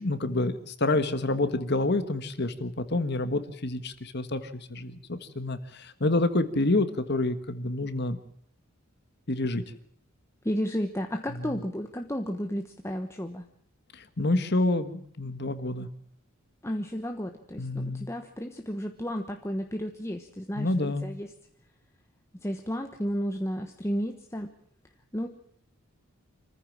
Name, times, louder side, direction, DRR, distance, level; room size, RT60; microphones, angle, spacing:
voice 1, 0.0-8.2 9.3-9.6 11.4-11.5 13.9-15.9 17.6-18.1 20.5-21.0, left 2 dB, 50° left, 11 dB, 1.5 m, -28 dB
voice 2, 10.4-13.5 16.6-21.3 22.3-24.5 25.1-25.3, equal, 15° left, 4 dB, 1.2 m, -32 dB
26.5 x 14.5 x 7.5 m, 0.67 s
head